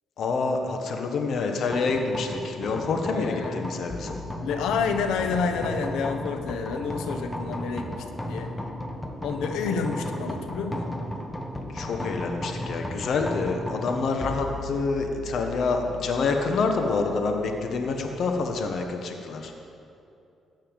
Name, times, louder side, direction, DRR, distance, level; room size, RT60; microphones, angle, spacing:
voice 1, 0.2-4.2 9.6-9.8 11.7-19.5, left 4 dB, 65° left, 4 dB, 1.3 m, -27 dB
sound 1, 1.7-18.9, left 1 dB, 15° left, 1.2 m, -35 dB
voice 2, 3.1-3.7 4.4-7.9 8.3-8.5 9.2-10.9, left 5 dB, 90° left, 7 dB, 1.0 m, -29 dB
14.5 x 5.7 x 9.1 m, 2.6 s
cardioid pair, 90°, 0 cm